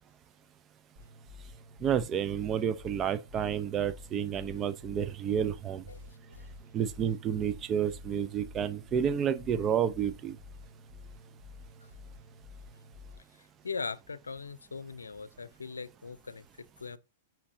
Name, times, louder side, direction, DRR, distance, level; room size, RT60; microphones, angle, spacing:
sound 1, 1.0-13.2, left 2 dB, 45° right, 3.0 m, -50 dB
voice 1, 1.8-5.8 6.7-10.4, right 8 dB, 30° right, 0.7 m, -30 dB
voice 2, 5.9-6.5 13.4-17.0, left 5 dB, 80° left, 0.6 m, -41 dB
8.5 x 5.9 x 2.8 m
figure-of-eight pair, 105°, 0 cm